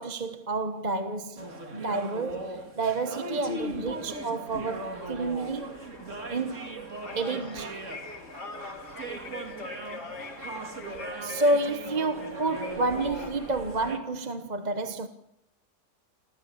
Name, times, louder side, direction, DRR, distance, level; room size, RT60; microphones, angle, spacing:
voice 1, 0.0-5.8 6.3-6.6 7.2-7.8 11.2-15.1, right 2 dB, 30° right, 1.1 m, -30 dB
sound 1, 1.4-14.0, right 2 dB, 45° right, 2.6 m, -39 dB
sound 2, 4.5-13.9, left 4 dB, 70° left, 2.7 m, -43 dB
26.0 x 15.0 x 8.5 m
omnidirectional pair, 1.9 m